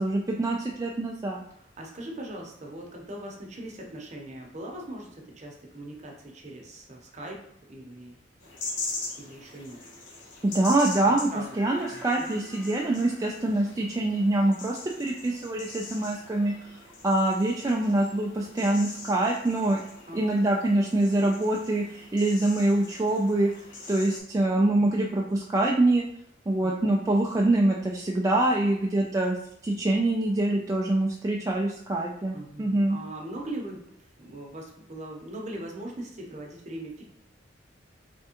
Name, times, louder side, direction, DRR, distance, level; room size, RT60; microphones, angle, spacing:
voice 1, 0.0-1.4 10.4-11.3 11.5-16.5 17.0-19.8 20.1-23.5 23.9-26.0 26.5-29.4 29.6-33.0, right 2 dB, 20° right, -1 dB, 0.3 m, -25 dB
voice 2, 1.5-8.2 9.2-9.8 11.0-11.4 11.9-12.4 20.1-20.2 26.6-26.9 32.3-33.8 34.2-37.0, right 1 dB, 40° right, 0 dB, 0.8 m, -40 dB
sound 1, 8.4-24.2, left 3 dB, 90° left, 1.1 m, -42 dB
3.5 x 3.3 x 2.9 m, 0.74 s
head